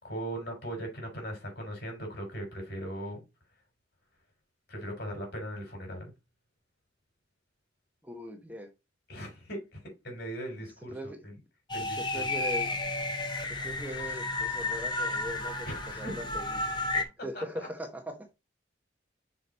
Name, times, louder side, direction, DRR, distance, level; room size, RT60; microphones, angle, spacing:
voice 1, 0.0-3.2 4.7-6.1 9.1-11.4 11.7-12.3 15.7-16.2 16.9-17.1 17.3-17.7, right 1 dB, 55° left, 4.3 m, -39 dB
voice 2, 8.0-8.7 10.9-11.2 11.8-12.8 13.6-16.6 17.2-18.2, equal, 10° right, 1.0 m, -40 dB
sound 1, 11.7-17.0, left 2 dB, 25° left, 1.1 m, -32 dB
6.1 x 5.0 x 4.1 m
head